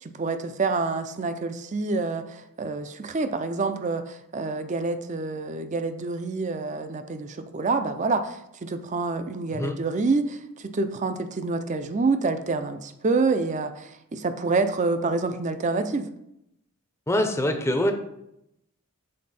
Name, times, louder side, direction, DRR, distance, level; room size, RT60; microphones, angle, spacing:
voice 1, 0.0-16.1, right 3 dB, 35° right, 9 dB, 0.4 m, -27 dB
voice 2, 17.1-17.9, left 1 dB, 10° left, 5 dB, 0.6 m, -24 dB
6.5 x 4.1 x 4.2 m, 0.81 s
head